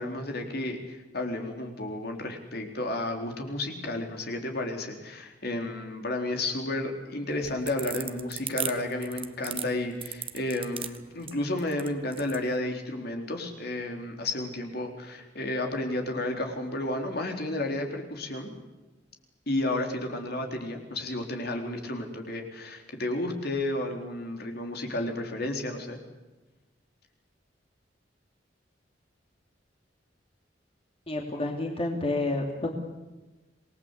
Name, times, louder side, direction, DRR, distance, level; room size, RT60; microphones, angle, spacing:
voice 1, 0.0-18.5 19.5-26.0, left 1 dB, 60° left, 3 dB, 4.0 m, -32 dB
sound 1, 7.3-12.4, right 9 dB, 30° right, 1.4 m, -36 dB
voice 2, 31.1-32.7, left 2 dB, 35° left, 2 dB, 3.0 m, -29 dB
27.0 x 20.0 x 8.3 m, 1.1 s
head